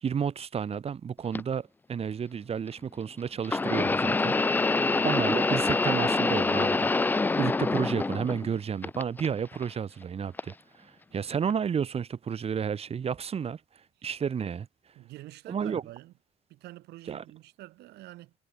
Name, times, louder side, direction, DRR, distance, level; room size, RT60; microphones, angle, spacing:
voice 1, 0.0-4.3 5.0-6.9 7.4-13.6 14.0-14.7 15.5-15.8 17.1-17.2, right 7 dB, 35° right, 1.5 m, -31 dB
sound 1, 1.3-1.4 3.4-8.5 8.8-9.6 10.4-10.5 11.5-11.6, left 3 dB, 10° left, 0.3 m, -26 dB
voice 2, 4.6-5.1 15.0-16.1 16.5-18.3, right 17 dB, 80° right, 1.7 m, -47 dB
cardioid pair, 110°, 17 cm